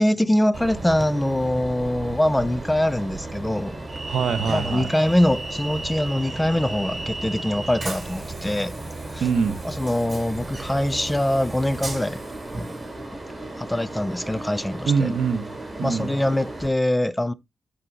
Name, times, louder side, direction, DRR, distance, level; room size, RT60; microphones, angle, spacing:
voice 1, 0.0-3.8 4.5-8.7 9.1-9.2 9.6-12.2 13.5-15.1 15.8-17.3, left 1 dB, 10° left, 0.6 m, -23 dB
Train, 0.5-16.7, right 2 dB, 35° right, 3.8 m, -34 dB
voice 2, 4.0-4.9 9.2-9.6 14.9-15.5 15.8-16.1, right 6 dB, 80° right, 1.0 m, -23 dB
11.0 x 4.3 x 2.8 m
cardioid pair, 60°, 0 cm